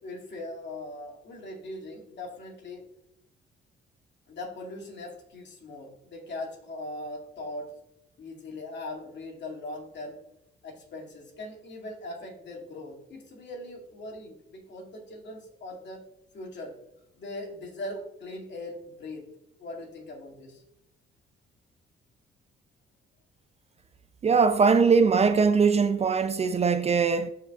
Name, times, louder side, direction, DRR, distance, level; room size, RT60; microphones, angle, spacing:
voice 1, 0.0-2.8 4.3-7.7 8.2-10.2 10.6-16.0 16.3-16.7 17.2-19.3 19.6-20.6, left 2 dB, 60° left, 2.4 m, -40 dB
voice 2, 24.2-27.3, right 5 dB, 35° right, 0.5 m, -21 dB
12.5 x 4.8 x 2.4 m
cardioid pair, 90°, 20 cm